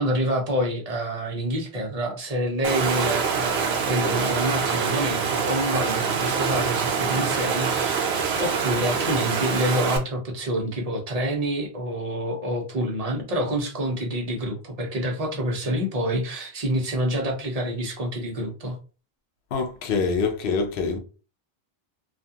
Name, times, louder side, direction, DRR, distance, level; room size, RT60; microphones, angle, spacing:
voice 1, 0.0-8.1 8.4-18.8, right 1 dB, 40° right, 0.8 m, -27 dB
Water, 2.6-10.0, right 6 dB, 80° right, 0.9 m, -25 dB
voice 2, 19.5-21.0, left 4 dB, 65° left, 0.7 m, -25 dB
2.4 x 2.3 x 2.7 m
omnidirectional pair, 1.1 m